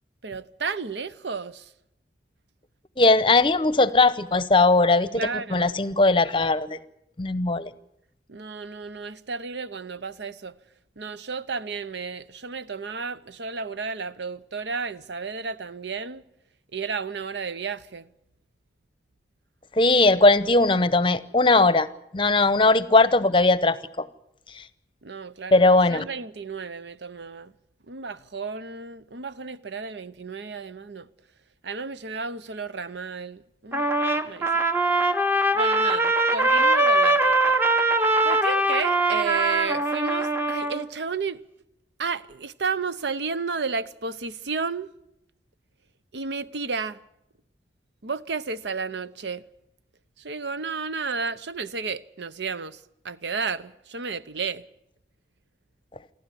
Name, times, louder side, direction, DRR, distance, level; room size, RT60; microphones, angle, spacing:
voice 1, 0.2-1.7 5.1-5.7 8.3-10.5 11.0-16.2 16.7-18.1 25.0-27.5 27.9-31.1 31.6-33.9 34.2-34.6 35.5-37.6 38.2-41.4 42.0-44.9 46.1-47.0 48.0-49.4 50.2-52.8 53.0-54.7, right 4 dB, 80° right, 0.8 m, -32 dB
voice 2, 3.0-6.8 7.2-7.7 19.8-21.9 22.1-24.0 25.5-26.1, left 2 dB, 30° left, 0.8 m, -19 dB
Trumpet, 33.7-40.8, right 2 dB, 10° right, 1.0 m, -22 dB
27.5 x 11.5 x 9.9 m
head